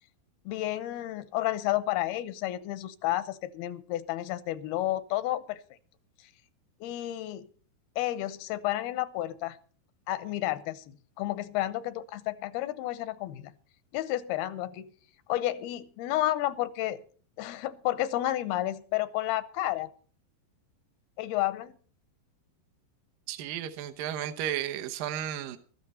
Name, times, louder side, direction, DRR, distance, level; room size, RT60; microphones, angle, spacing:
voice 1, 0.5-5.6 6.8-7.5 8.0-9.6 10.1-10.8 11.2-13.5 13.9-14.9 15.3-17.0 17.4-19.9 21.2-21.7, left 15 dB, 90° left, 2.8 m, -31 dB
voice 2, 23.3-25.6, right 11 dB, 70° right, 2.5 m, -33 dB
15.0 x 13.0 x 4.3 m
omnidirectional pair, 4.4 m